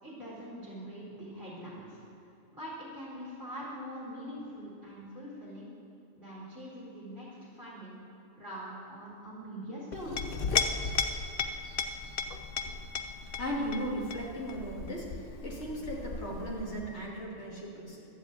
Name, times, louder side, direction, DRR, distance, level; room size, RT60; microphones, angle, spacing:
voice 1, 0.0-2.0 2.5-5.7 6.2-8.0 8.4-10.2, equal, 20° right, -9 dB, 3.9 m, -43 dB
Chink clink, 9.9-17.0, left 5 dB, 55° left, 0.9 m, -35 dB
voice 2, 13.4-18.1, equal, 75° left, -4 dB, 2.8 m, -37 dB
12.5 x 7.5 x 8.4 m, 2.8 s
omnidirectional pair, 1.2 m